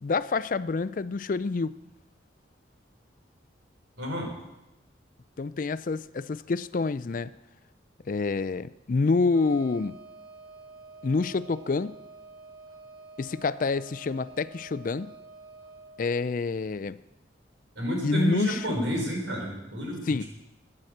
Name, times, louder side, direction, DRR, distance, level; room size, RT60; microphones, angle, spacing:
voice 1, 0.0-1.7 5.4-7.3 8.1-9.9 11.0-12.0 13.2-15.1 16.0-17.0 18.0-18.6 20.1-20.2, left 4 dB, 45° left, 16 dB, 0.4 m, -27 dB
voice 2, 4.0-4.4 17.7-20.2, equal, 85° right, -1 dB, 5.0 m, -30 dB
Wind instrument woodwind instrument, 9.3-16.0, right 3 dB, 20° right, 3.1 m, -48 dB
11.5 x 9.8 x 7.8 m, 0.94 s
head